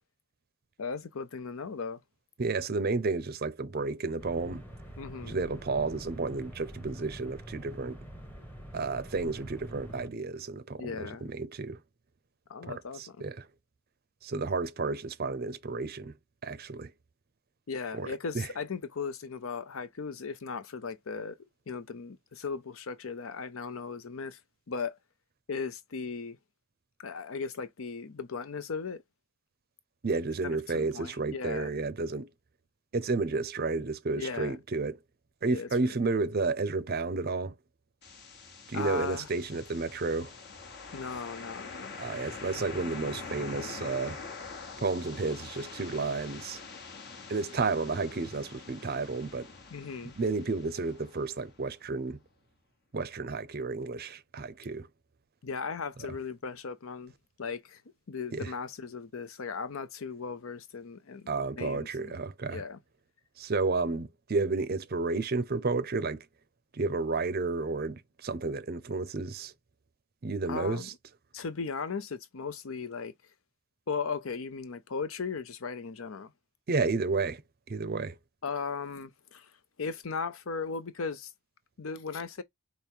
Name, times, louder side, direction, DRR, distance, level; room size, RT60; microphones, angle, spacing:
voice 1, 0.8-2.0 5.0-5.4 10.8-11.3 12.5-13.2 17.7-21.4 21.7-24.4 24.7-25.0 25.5-26.4 27.0-29.0 30.4-31.7 34.2-34.6 35.5-35.9 38.7-39.3 40.9-42.0 49.7-50.2 55.4-57.1 57.4-57.8 58.1-62.2 62.5-62.8 70.5-70.9 71.3-73.1 73.9-76.3 78.4-79.5 79.8-81.3 81.8-82.4, left 5 dB, 65° left, 0.6 m, -37 dB
voice 2, 2.4-4.6 5.2-8.0 8.7-11.8 12.7-13.5 14.2-16.1 16.4-16.9 17.9-18.5 30.0-32.3 32.9-35.0 35.4-37.6 38.7-40.3 42.0-44.2 44.8-46.6 47.3-49.5 50.0-52.2 52.9-54.9 58.3-58.5 61.3-62.6 63.4-66.3 66.7-69.5 70.2-70.9 76.7-77.4 77.7-78.1, right 3 dB, 45° right, 0.6 m, -31 dB
sound 1, 4.2-10.1, right 1 dB, 10° left, 1.0 m, -45 dB
sound 2, 38.0-51.9, left 4 dB, 50° left, 1.2 m, -45 dB
5.2 x 2.2 x 4.5 m
head